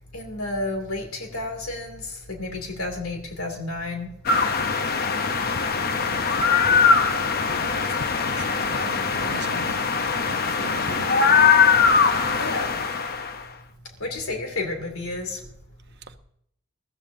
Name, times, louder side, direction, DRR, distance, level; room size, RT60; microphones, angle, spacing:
voice 1, 0.1-4.1 12.4-12.7 14.0-15.4, left 2 dB, 85° left, 2.6 m, -31 dB
sound 1, 4.3-13.4, left 5 dB, 45° left, 0.8 m, -21 dB
voice 2, 7.5-8.0 8.4-9.8 10.2-11.1 16.1-16.2, right 4 dB, 50° right, 0.8 m, -39 dB
21.5 x 14.0 x 2.7 m
head